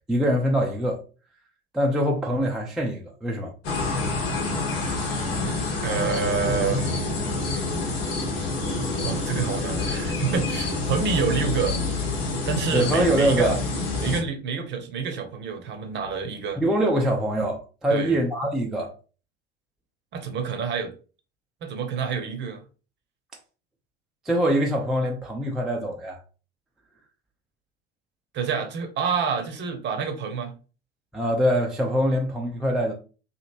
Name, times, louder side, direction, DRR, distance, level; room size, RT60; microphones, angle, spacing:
voice 1, 0.1-1.0 1.7-3.5 12.7-13.6 16.6-18.9 24.3-26.2 31.1-32.9, equal, ahead, 0.3 m, -24 dB
sound 1, 3.6-14.2, left 3 dB, 70° left, 0.9 m, -27 dB
voice 2, 5.8-7.6 9.0-11.8 12.5-13.6 14.0-16.6 17.9-18.2 20.1-20.9 21.6-22.6 28.3-30.5, right 6 dB, 35° right, 0.7 m, -28 dB
2.9 x 2.7 x 2.6 m
figure-of-eight pair, 75°, 31 cm